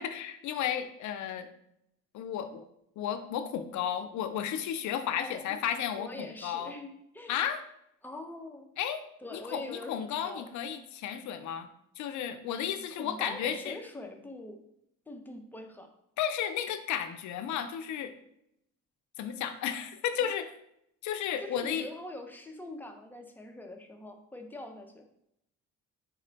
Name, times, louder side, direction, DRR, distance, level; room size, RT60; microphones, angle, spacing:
voice 1, 0.0-1.5 2.1-2.7 3.0-6.7 7.3-7.6 8.8-9.0 9.3-11.7 12.0-13.8 16.2-18.1 19.2-20.5 21.0-21.9, left 9 dB, 70° left, 9 dB, 0.5 m, -33 dB
voice 2, 6.0-7.4 8.0-8.7 9.2-10.5 13.0-14.6 15.1-15.9 20.2-20.3 21.4-25.1, left 2 dB, 5° left, 3 dB, 0.5 m, -43 dB
4.1 x 2.1 x 3.8 m, 0.77 s
cardioid pair, 90°, 30 cm